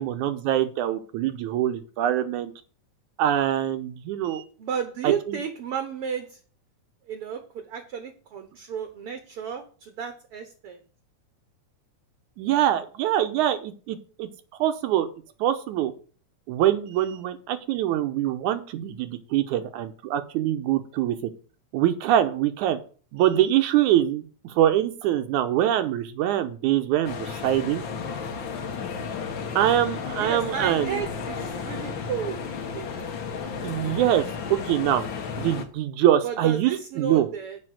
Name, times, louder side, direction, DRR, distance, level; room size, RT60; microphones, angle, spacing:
voice 1, 0.0-2.5 3.2-4.4 5.0-5.4 12.4-14.3 14.6-15.1 15.4-15.9 16.5-21.3 21.7-22.8 23.1-27.8 29.6-31.0 33.6-35.0 35.4-37.3, right 11 dB, 80° right, 9 dB, 2.2 m, -24 dB
voice 2, 4.6-6.4 7.1-10.8 29.4-29.6 30.2-32.4 32.7-33.9 36.2-37.6, right 7 dB, 60° right, 7 dB, 1.6 m, -33 dB
sound 1, 27.0-35.7, left 6 dB, 55° left, 1.4 m, -33 dB
7.8 x 5.6 x 7.6 m, 0.39 s
omnidirectional pair, 3.6 m